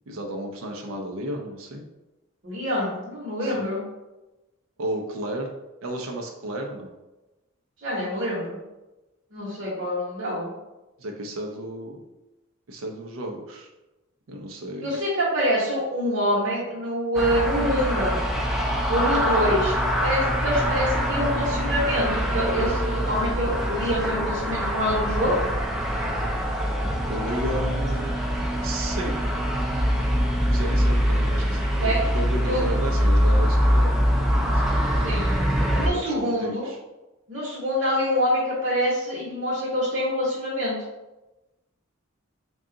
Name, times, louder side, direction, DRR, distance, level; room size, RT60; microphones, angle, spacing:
voice 1, 0.1-1.8 3.4-3.7 4.8-5.5 5.8-6.9 11.0-12.0 12.7-13.7 14.3-14.9 27.1-28.1 28.6-29.2 30.5-34.8 35.8-36.8, right 1 dB, 80° right, 2 dB, 0.5 m, -33 dB
voice 2, 2.4-3.8 7.8-8.6 9.3-10.5 14.8-18.2 18.9-25.4 31.8-32.0 32.5-32.7 35.0-35.3 35.7-36.7 37.3-40.7, equal, 60° right, -8 dB, 1.0 m, -26 dB
sound 1, 17.1-35.9, equal, ahead, 0.3 m, -24 dB
3.7 x 2.3 x 3.7 m, 1.0 s
head